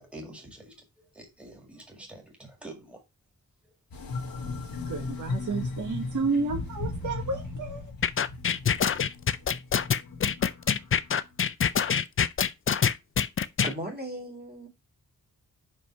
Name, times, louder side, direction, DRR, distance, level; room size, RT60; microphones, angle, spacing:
voice 1, 0.0-3.0, right 1 dB, 5° right, 1.9 m, -46 dB
sound 1, 3.9-11.4, left 3 dB, 90° left, 1.5 m, -37 dB
voice 2, 4.9-7.9, right 4 dB, 60° right, 1.2 m, -31 dB
sound 2, 8.0-13.7, left 7 dB, 40° left, 0.4 m, -24 dB
voice 3, 13.6-14.7, right 1 dB, 25° right, 2.3 m, -36 dB
5.4 x 5.3 x 4.3 m
wide cardioid pair, 165°, 34 cm